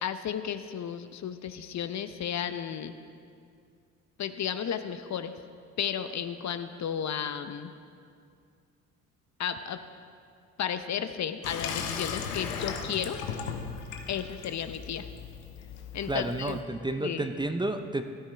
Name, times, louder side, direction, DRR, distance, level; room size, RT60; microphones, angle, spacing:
voice 1, 0.0-2.9 4.2-5.3 5.8-7.7 9.4-9.8 10.6-13.2 14.1-15.0 15.9-16.6 17.0-17.3, left 8 dB, 45° left, 10 dB, 0.8 m, -33 dB
Water tap faucet / Sink (filling or washing), 11.4-16.6, left 6 dB, 80° left, 1.0 m, -37 dB
voice 2, 16.1-18.0, right 2 dB, 10° right, 8 dB, 0.7 m, -31 dB
15.5 x 13.0 x 3.4 m, 2.3 s
hypercardioid pair, 55°, 39 cm